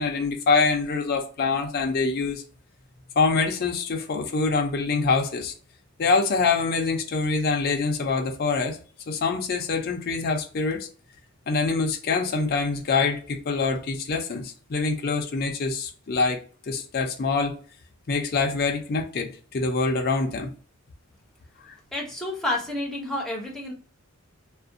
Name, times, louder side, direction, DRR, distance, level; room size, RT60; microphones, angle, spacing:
voice 1, 0.0-2.4 3.2-5.5 6.0-8.8 9.1-10.9 11.5-16.4 16.7-17.6 18.1-20.5 21.7-21.8, left 4 dB, 45° left, 0.4 m, -25 dB
voice 2, 21.9-23.7, left 1 dB, ahead, 0.6 m, -29 dB
2.4 x 2.1 x 2.5 m
head